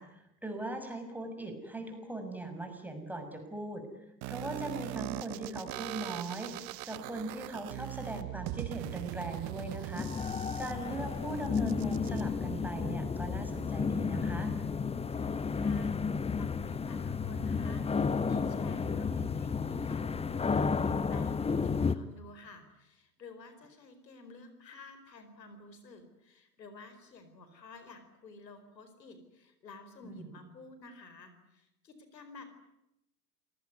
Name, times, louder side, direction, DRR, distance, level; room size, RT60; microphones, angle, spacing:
voice 1, 0.0-3.8 4.3-6.6 6.8-10.1 10.6-14.5 30.0-30.3, right 2 dB, 5° right, 5 dB, 6.6 m, -40 dB
sound 1, 4.2-12.2, right 19 dB, 45° right, 1.3 m, -41 dB
sound 2, 10.0-22.0, left 5 dB, 10° left, 1.0 m, -32 dB
voice 2, 15.1-32.4, left 3 dB, 80° left, 10 dB, 4.6 m, -52 dB
28.0 x 19.0 x 9.6 m, 0.86 s
figure-of-eight pair, 85°, 50 cm